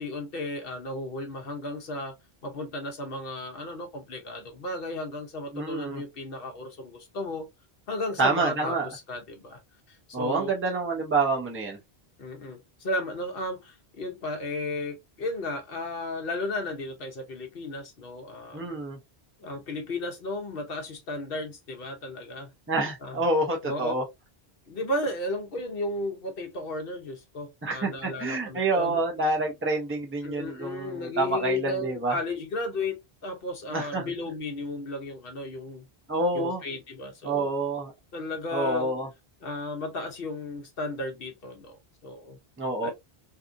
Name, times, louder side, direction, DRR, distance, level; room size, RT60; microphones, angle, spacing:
voice 1, 0.0-2.1 2.4-7.5 7.9-9.6 9.9-10.5 12.2-18.8 19.4-22.5 23.0-23.2 23.6-23.9 24.7-29.0 30.2-35.8 36.3-37.5 38.1-38.9 39.4-42.4 42.8-42.9, left 2 dB, 65° left, 0.9 m, -34 dB
voice 2, 5.5-6.0 8.2-8.9 10.1-11.8 18.5-19.0 22.7-24.0 27.6-32.2 33.7-34.0 36.1-36.6 37.2-37.9 38.5-39.1 42.6-42.9, right 2 dB, 15° right, 0.7 m, -27 dB
2.8 x 2.4 x 2.4 m
omnidirectional pair, 1.0 m